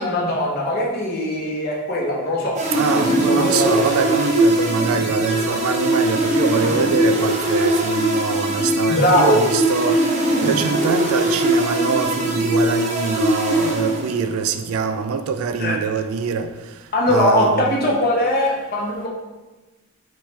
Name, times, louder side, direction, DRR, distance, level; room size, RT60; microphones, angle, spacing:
voice 1, 0.0-2.6 2.9-3.8 9.0-9.4 15.6-15.7 16.9-19.1, left 1 dB, 45° left, 0.8 m, -20 dB
sound 1, 2.5-14.4, right 1 dB, 30° right, 0.6 m, -21 dB
voice 2, 2.7-10.0 10.4-16.5 17.1-17.7, right 5 dB, 80° right, 0.3 m, -23 dB
4.0 x 3.2 x 3.3 m
head